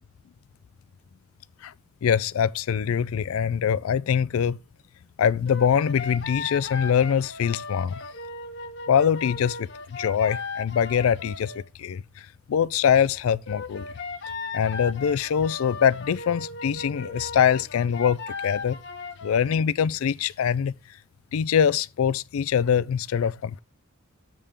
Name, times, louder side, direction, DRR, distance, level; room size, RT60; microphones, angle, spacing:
voice 1, 2.0-4.6 5.2-8.0 8.9-13.9 14.5-18.8 19.2-20.7 21.3-23.6, left 8 dB, 70° left, 0.3 m, -23 dB
sound 1, 5.5-11.7 13.5-19.7, left 4 dB, 50° left, 0.8 m, -37 dB
7.3 x 3.5 x 6.4 m
head